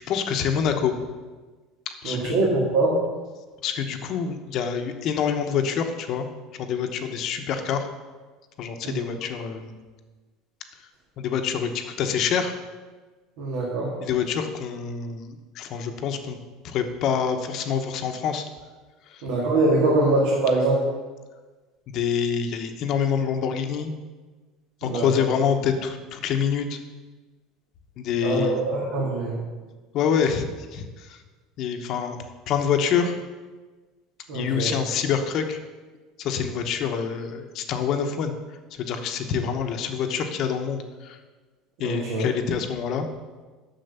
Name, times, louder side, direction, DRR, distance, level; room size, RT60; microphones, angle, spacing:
voice 1, 0.1-0.9 1.9-2.3 3.6-6.3 6.6-7.9 8.6-9.7 11.2-12.5 14.0-16.4 16.6-18.4 19.1-19.2 21.9-23.9 24.8-26.8 28.0-28.6 29.9-30.4 30.7-31.2 31.6-32.2 32.5-33.1 34.3-35.6 36.2-38.3 38.8-41.2 41.8-43.1, left 7 dB, 45° left, 6 dB, 0.9 m, -26 dB
voice 2, 2.0-2.9 8.8-9.0 13.4-13.9 19.2-20.8 24.8-25.1 28.2-29.3 34.3-34.7 41.8-42.2, right 2 dB, 75° right, -5 dB, 2.2 m, -23 dB
7.8 x 6.5 x 6.7 m, 1.3 s
cardioid pair, 150°, 0 cm